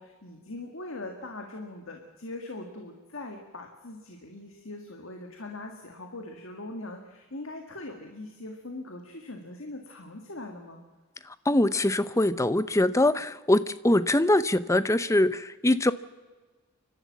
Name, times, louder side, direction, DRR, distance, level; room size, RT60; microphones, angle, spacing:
voice 1, 0.0-10.8, left 2 dB, 60° left, 3 dB, 1.9 m, -41 dB
voice 2, 11.2-15.9, left 1 dB, 15° left, 15 dB, 0.6 m, -23 dB
30.0 x 12.5 x 7.5 m, 1.4 s
head